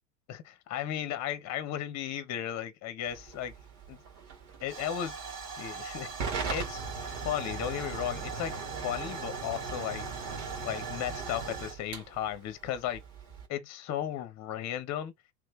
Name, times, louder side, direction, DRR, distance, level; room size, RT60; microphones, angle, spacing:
voice 1, 0.3-3.5 3.9-4.0 4.6-5.1 5.6-8.6 8.8-10.0 10.6-13.0 13.5-15.1, left 10 dB, 35° left, 1.0 m, -35 dB
Hiss / Fire / Tick, 3.1-13.5, right 5 dB, 50° right, 2.1 m, -38 dB
3.6 x 3.2 x 3.2 m
hypercardioid pair, 90°, 48 cm